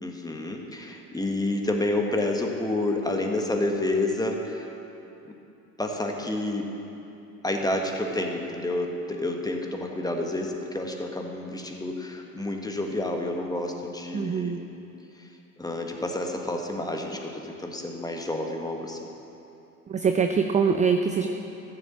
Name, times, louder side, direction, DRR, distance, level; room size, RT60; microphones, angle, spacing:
voice 1, 0.0-4.7 5.8-6.7 7.4-14.7 15.2-15.3 15.6-19.0, left 2 dB, 10° left, 2 dB, 1.6 m, -29 dB
voice 2, 14.1-14.6 19.9-21.3, right 5 dB, 15° right, 6 dB, 0.5 m, -23 dB
14.5 x 7.3 x 7.4 m, 2.9 s
figure-of-eight pair, 70°, 43 cm